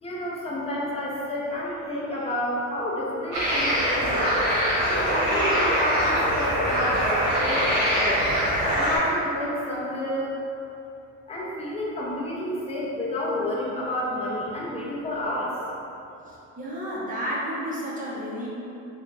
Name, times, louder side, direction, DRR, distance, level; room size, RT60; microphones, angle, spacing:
voice 1, 0.0-4.2 4.9-8.3 8.8-10.4 11.3-15.5, left 1 dB, 20° left, -5 dB, 0.6 m, -30 dB
sound 1, 3.3-9.0, equal, 65° right, 1.1 m, -23 dB
voice 2, 16.6-18.5, equal, 25° right, -7 dB, 0.7 m, -31 dB
3.6 x 2.2 x 3.3 m, 2.8 s
cardioid pair, 145°, 31 cm